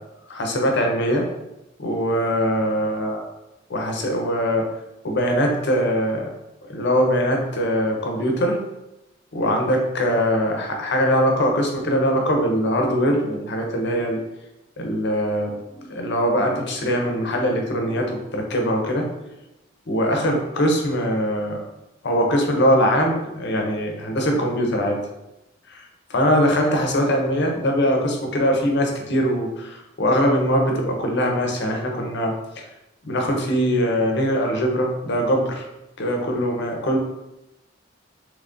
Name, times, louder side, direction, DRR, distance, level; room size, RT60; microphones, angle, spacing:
voice 1, 0.3-1.3 1.8-3.2 3.7-4.7 5.0-6.3 6.7-8.6 9.3-14.2 14.8-19.1 19.9-21.6 22.0-25.0 25.7-32.6 33.0-35.7 36.0-37.0, equal, 65° left, 2 dB, 0.7 m, -22 dB
3.7 x 3.0 x 2.5 m, 0.93 s
head